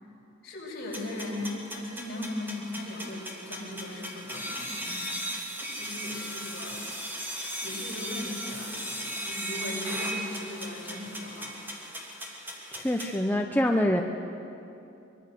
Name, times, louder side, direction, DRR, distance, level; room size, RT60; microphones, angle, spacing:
voice 1, 0.4-5.1 5.6-6.8 7.6-11.6, left 1 dB, 55° left, -4 dB, 8.0 m, -38 dB
sound 1, 0.9-13.1, equal, 10° right, 3.3 m, -37 dB
voice 2, 12.7-14.0, left 1 dB, 10° left, 2 dB, 0.8 m, -25 dB
25.0 x 23.0 x 6.9 m, 2.8 s
head